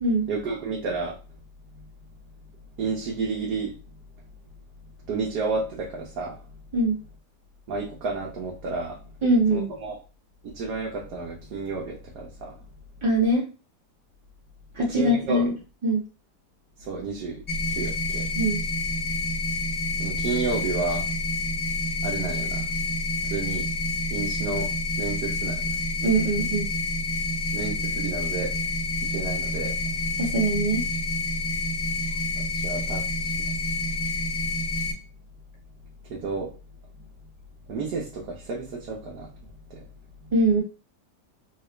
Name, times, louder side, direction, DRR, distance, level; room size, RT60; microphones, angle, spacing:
voice 1, 0.3-1.2 2.8-3.8 5.1-6.4 7.7-9.0 9.5-10.0 10.4-12.5 14.8-15.5 16.8-17.4 17.7-18.3 20.0-21.1 22.0-22.7 23.2-23.7 24.1-24.7 25.0-25.6 27.5-28.5 29.1-29.8 32.6-33.3 36.1-36.5 37.7-39.3 39.7-39.8, right 4 dB, 70° right, -2 dB, 1.3 m, -31 dB
voice 2, 9.2-9.7 13.0-13.5 14.7-15.5 15.8-16.0 18.3-18.6 26.0-26.7 30.2-30.9 40.3-40.6, right 1 dB, 20° right, -3 dB, 1.0 m, -22 dB
sound 1, 17.5-34.9, left 2 dB, 20° left, 0.6 m, -28 dB
4.0 x 2.4 x 3.2 m, 0.33 s
omnidirectional pair, 1.8 m